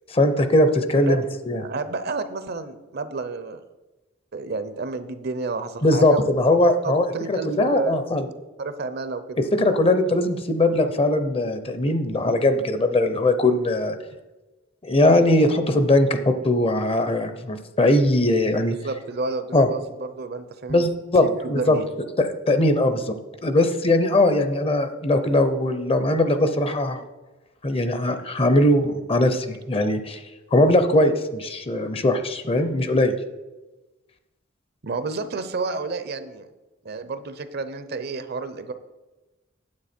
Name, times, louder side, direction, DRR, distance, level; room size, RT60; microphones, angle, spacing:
voice 1, 0.1-1.6 5.8-8.3 9.4-14.0 14.8-18.7 19.5-19.7 20.7-21.8 22.2-23.1 23.4-27.0 27.6-30.2 30.5-33.2, left 1 dB, 30° left, 9 dB, 0.7 m, -20 dB
voice 2, 1.5-3.6 4.3-6.2 6.5-8.0 8.6-9.4 18.8-20.9 21.2-21.8 34.8-36.5 36.8-38.7, right 3 dB, 55° right, 11 dB, 0.7 m, -30 dB
9.6 x 7.9 x 4.4 m, 1.1 s
head